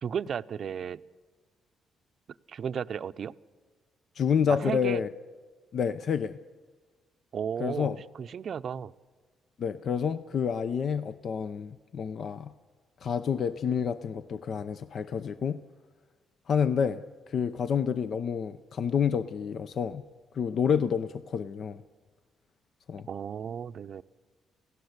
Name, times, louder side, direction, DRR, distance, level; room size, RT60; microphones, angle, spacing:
voice 1, 0.0-1.0 2.5-3.3 4.5-5.0 7.3-8.9 23.1-24.0, right 7 dB, 55° right, 0.6 m, -34 dB
voice 2, 4.2-5.1 5.7-6.4 7.6-8.0 9.6-12.5 13.0-15.6 16.5-20.0 20.3-21.8 22.9-23.1, left 7 dB, 55° left, 0.7 m, -29 dB
29.0 x 17.0 x 8.1 m
cardioid pair, 90°, 0 cm